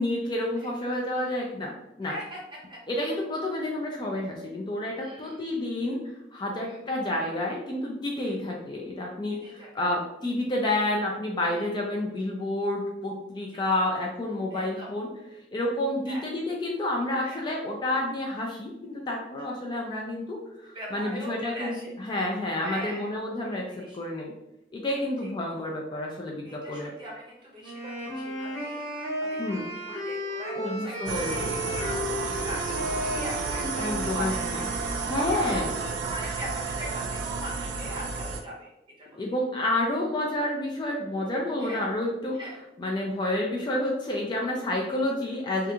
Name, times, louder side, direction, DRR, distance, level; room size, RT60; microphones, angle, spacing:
voice 1, 0.0-1.7 2.0-2.1 2.9-6.0 6.3-15.1 15.5-23.6 23.9-24.3 24.7-26.9 29.4-29.6 30.6-31.5 33.8-34.3 35.1-35.7 39.1-42.4 42.8-45.7, left 1 dB, 25° left, -1 dB, 0.3 m, -29 dB
voice 2, 2.0-2.4 2.7-2.8 5.0-5.4 6.6-6.8 8.1-8.4 9.4-9.7 11.5-11.6 13.5-13.6 14.5-14.9 16.1-16.3 17.2-17.4 20.7-21.9 22.6-23.1 23.4-24.0 24.9-25.3 26.4-34.8 35.7-38.7 39.0-39.2 41.6-41.8 42.3-42.6 44.9-45.0, equal, 30° right, -4 dB, 0.8 m, -41 dB
sound 1, 27.6-35.1, equal, 65° left, 1.3 m, -34 dB
sound 2, 31.1-38.4, right 4 dB, 85° right, 0.3 m, -31 dB
2.4 x 2.3 x 2.7 m, 0.87 s
head